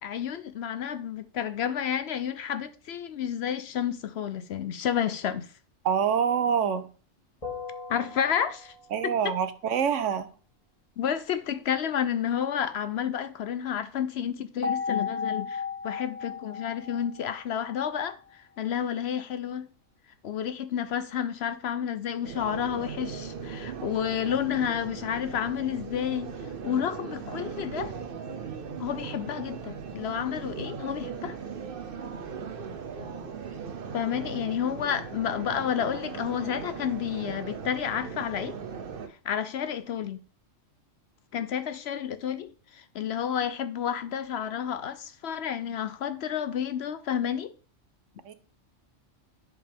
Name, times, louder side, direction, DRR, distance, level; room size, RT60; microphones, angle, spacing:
voice 1, 0.0-5.5 7.9-8.7 9.0-9.4 11.0-19.7 20.2-27.9 28.8-31.4 33.9-38.6 39.2-40.2 41.3-47.5, left 9 dB, 60° left, 0.8 m, -30 dB
voice 2, 5.8-6.9 8.9-10.3 48.2-48.3, right 7 dB, 75° right, 1.1 m, -26 dB
sound 1, 7.4-9.0 14.6-18.0, left 6 dB, 30° left, 2.1 m, -35 dB
sound 2, 22.2-39.1, right 6 dB, 50° right, 0.9 m, -38 dB
11.0 x 5.1 x 3.5 m
omnidirectional pair, 1.3 m